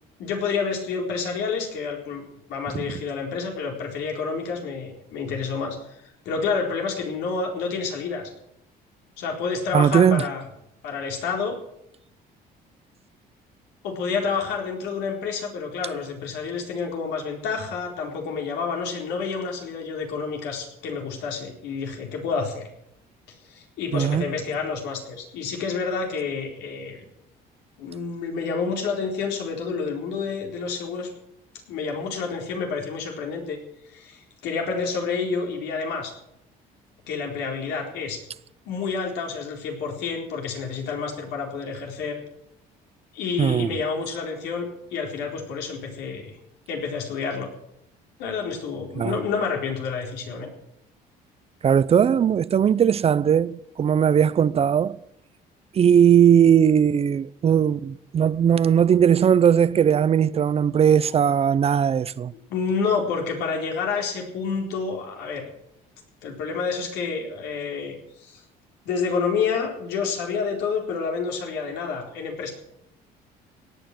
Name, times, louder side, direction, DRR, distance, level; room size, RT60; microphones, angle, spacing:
voice 1, 0.2-8.3 9.2-10.4 10.8-11.6 13.8-22.7 23.3-27.1 27.8-31.1 31.7-33.6 33.8-36.1 37.1-38.2 38.7-42.2 43.1-46.3 46.7-47.5 48.2-50.5 62.5-65.5 66.2-68.4 68.8-72.5, left 5 dB, 85° left, 4.1 m, -29 dB
voice 2, 9.7-10.2 23.9-24.2 43.4-43.7 49.0-49.2 51.6-55.0 55.7-62.3, right 8 dB, 35° right, 0.6 m, -19 dB
17.5 x 9.1 x 7.7 m
cardioid pair, 110°, 17 cm